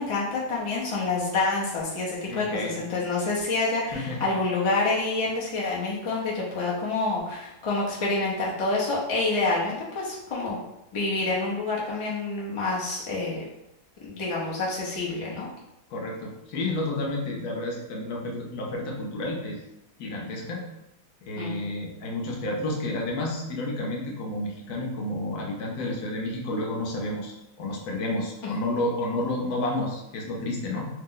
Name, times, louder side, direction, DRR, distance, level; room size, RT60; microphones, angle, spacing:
voice 1, 0.0-10.6 10.9-13.4 14.0-15.5 21.4-21.6 28.4-28.5, left 3 dB, 50° left, -5 dB, 0.3 m, -27 dB
voice 2, 2.3-2.8 3.9-4.3 15.9-19.6 20.0-20.6 21.2-30.9, left 1 dB, 70° left, -1 dB, 1.1 m, -30 dB
3.0 x 2.0 x 3.8 m, 0.88 s
omnidirectional pair, 1.8 m